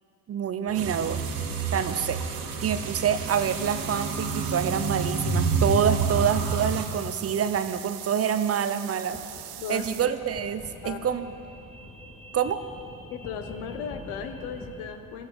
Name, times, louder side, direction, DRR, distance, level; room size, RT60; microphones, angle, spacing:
voice 1, 0.3-1.2 1.7-2.2 2.6-9.2 9.7-11.3 12.3-12.6, right 8 dB, 35° right, 11 dB, 0.7 m, -26 dB
sound 1, 0.6-14.8, left 1 dB, 30° left, 3.3 m, -47 dB
sound 2, 0.8-6.8, right 4 dB, 60° right, 1.8 m, -29 dB
sound 3, 3.2-10.1, right 14 dB, 90° right, 0.7 m, -41 dB
voice 2, 13.1-15.3, left 7 dB, 70° left, 8 dB, 1.2 m, -36 dB
15.5 x 12.0 x 4.7 m, 2.6 s
hypercardioid pair, 70°, 42 cm